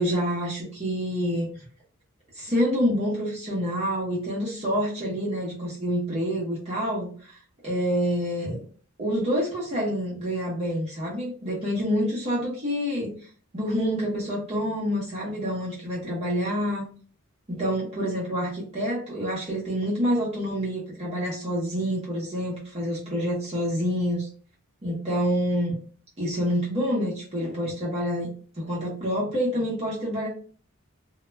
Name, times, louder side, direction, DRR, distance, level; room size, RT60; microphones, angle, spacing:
voice 1, 0.0-1.5 2.3-7.4 7.6-8.6 9.0-13.1 13.5-16.8 17.5-24.3 24.8-25.8 26.2-30.3, equal, 30° right, -5 dB, 0.7 m, -27 dB
2.1 x 2.1 x 3.2 m, 0.43 s
head